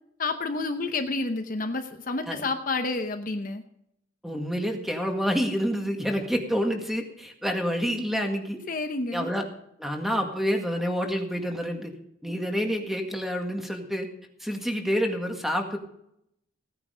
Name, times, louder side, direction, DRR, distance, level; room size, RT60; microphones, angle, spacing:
voice 1, 0.2-3.6 8.7-9.3, left 3 dB, 45° left, 6 dB, 0.9 m, -29 dB
voice 2, 4.2-8.6 9.1-9.5 9.8-11.9 12.2-14.1 14.4-15.8, equal, ahead, 3 dB, 1.8 m, -28 dB
16.5 x 9.8 x 5.1 m, 0.75 s
head